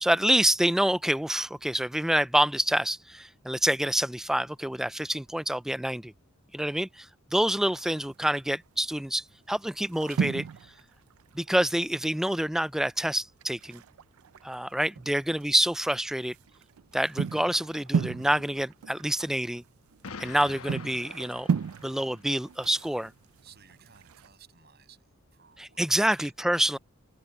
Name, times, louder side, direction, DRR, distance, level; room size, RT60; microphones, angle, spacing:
voice 1, 0.0-6.1 6.5-10.5 11.3-13.8 14.4-16.4 16.9-19.6 20.2-21.5 21.8-23.1 25.6-26.8, right 1 dB, ahead, 0.3 m, -27 dB
sound 1, 7.7-8.3 9.0-9.2 9.5-12.2 12.4-12.5 12.8-12.9 13.4-15.5 15.9-24.3, right 6 dB, 85° right, 0.4 m, -35 dB
Explosion, 20.0-22.2, left 5 dB, 85° left, 1.1 m, -44 dB
voice 2, 23.4-26.8, right 8 dB, 50° right, 6.9 m, -57 dB
open air
head